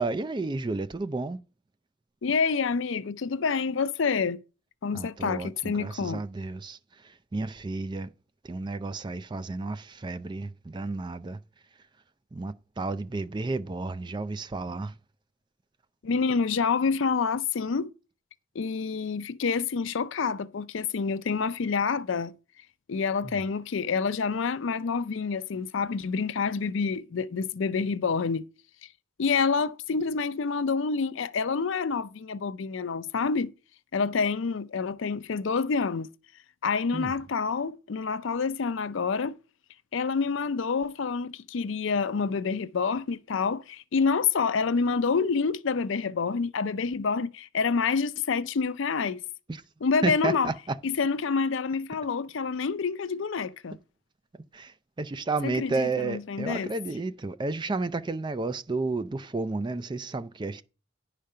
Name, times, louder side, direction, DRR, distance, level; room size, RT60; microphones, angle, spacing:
voice 1, 0.0-1.4 4.9-8.1 8.4-11.4 12.3-15.0 23.2-23.3 36.9-37.1 49.5-49.6 50.0-50.8 54.5-60.6, right 3 dB, 20° right, 0.4 m, -32 dB
voice 2, 2.2-4.4 4.8-6.2 16.0-17.9 18.5-22.3 22.9-28.4 28.8-28.9 29.2-33.5 33.9-36.1 36.6-39.4 39.9-49.2 49.8-50.5 50.8-53.8 55.4-56.7, left 5 dB, 65° left, 0.5 m, -27 dB
10.5 x 5.0 x 5.5 m
head